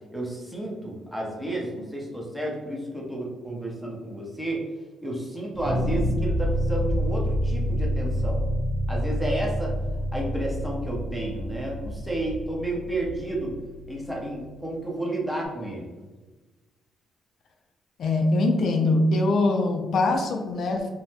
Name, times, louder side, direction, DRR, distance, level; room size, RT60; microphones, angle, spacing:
voice 1, 0.1-4.6 5.0-8.4 8.9-9.7 10.1-13.5 13.9-15.9, right 1 dB, ahead, -4 dB, 0.7 m, -31 dB
sound 1, 5.6-14.7, equal, 75° right, 1.3 m, -28 dB
voice 2, 18.0-20.9, left 2 dB, 60° left, 3 dB, 0.4 m, -22 dB
2.7 x 2.0 x 3.4 m, 1.2 s
cardioid pair, 90°, 0 cm